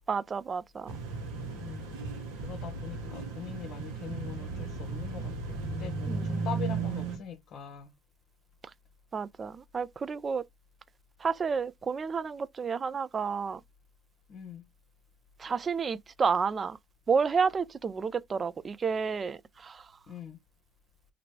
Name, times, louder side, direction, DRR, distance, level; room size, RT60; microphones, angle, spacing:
voice 1, 0.1-0.9 6.1-6.3 9.1-10.4 11.2-13.6 15.4-16.8 17.1-19.9, right 5 dB, 35° right, 0.3 m, -30 dB
sound 1, 0.9-7.2, right 4 dB, 80° right, 1.0 m, -35 dB
voice 2, 1.6-1.9 2.4-7.9 14.3-14.6 20.1-20.4, left 8 dB, 60° left, 0.7 m, -42 dB
2.9 x 2.6 x 2.9 m
hypercardioid pair, 70°, 0 cm